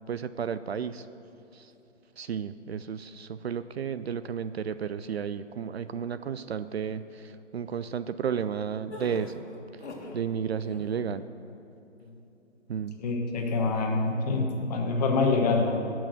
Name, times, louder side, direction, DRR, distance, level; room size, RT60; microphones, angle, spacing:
voice 1, 0.1-1.1 1.5-1.7 2.2-9.3 9.7-9.8 10.1-11.3 12.7-13.0, right 7 dB, 55° right, 13 dB, 0.5 m, -33 dB
sound 1, 8.9-10.2 10.6-11.0, left 2 dB, 60° left, 1.8 m, -41 dB
voice 2, 13.0-15.7, left 3 dB, 35° left, 2 dB, 1.3 m, -26 dB
16.0 x 6.2 x 6.3 m, 2.8 s
figure-of-eight pair, 140°, 37 cm